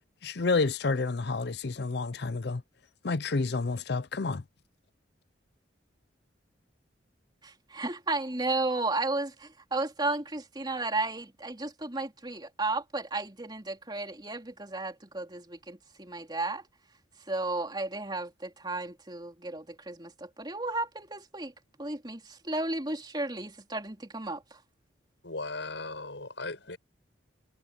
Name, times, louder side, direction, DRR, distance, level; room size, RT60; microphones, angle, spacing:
voice 1, 0.2-2.6 3.0-4.4, left 3 dB, 60° left, 0.6 m, -29 dB
voice 2, 7.4-16.6 17.3-21.5 21.8-24.6, right 2 dB, 25° right, 3.5 m, -33 dB
voice 3, 25.2-26.8, left 3 dB, 80° left, 7.4 m, -37 dB
head